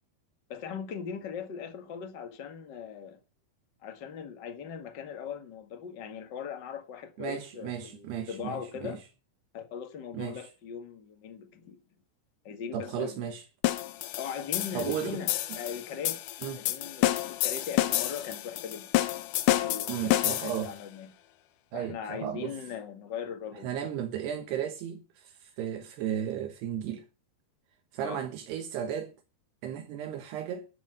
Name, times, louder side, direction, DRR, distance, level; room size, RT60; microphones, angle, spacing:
voice 1, 0.5-3.2 3.8-9.0 9.5-11.8 12.4-13.2 14.2-16.2 16.5-17.2 17.4-18.9 19.5-21.1 21.7-23.7 28.0-28.2, left 7 dB, 50° left, 1.3 m, -39 dB
voice 2, 7.2-9.0 10.1-10.5 12.7-13.4 14.7-15.2 16.4-16.6 19.9-20.7 21.7-22.6 23.5-27.1 27.9-29.1 29.6-30.7, right 9 dB, 80° right, 3.2 m, -35 dB
sound 1, 13.6-20.7, left 15 dB, 80° left, 1.8 m, -29 dB
12.5 x 7.4 x 6.7 m
omnidirectional pair, 4.8 m